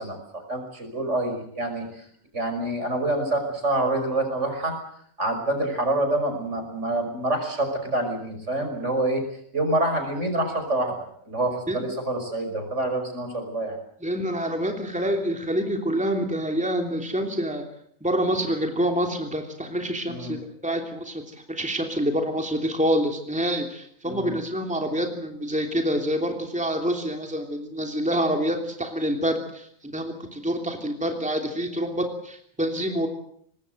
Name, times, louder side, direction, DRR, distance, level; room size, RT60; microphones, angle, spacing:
voice 1, 0.0-2.0 2.3-4.8 5.2-9.2 9.5-13.8 20.1-20.3 24.0-24.3, right 1 dB, 60° right, 5 dB, 6.1 m, -27 dB
voice 2, 14.0-17.6 18.0-20.4 20.6-21.2 21.5-29.7 29.9-33.1, equal, 5° right, 3 dB, 3.1 m, -26 dB
25.0 x 20.0 x 7.9 m, 0.66 s
omnidirectional pair, 1.4 m